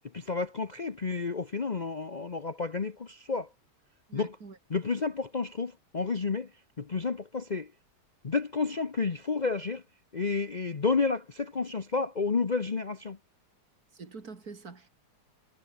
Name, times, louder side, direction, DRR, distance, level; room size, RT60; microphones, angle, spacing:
voice 1, 0.1-3.5 4.1-4.4 4.7-6.5 6.8-7.7 8.2-9.8 10.1-13.2, left 4 dB, 85° left, 0.3 m, -31 dB
voice 2, 4.1-4.6 13.9-14.9, right 4 dB, 45° right, 3.1 m, -45 dB
omnidirectional pair, 2.3 m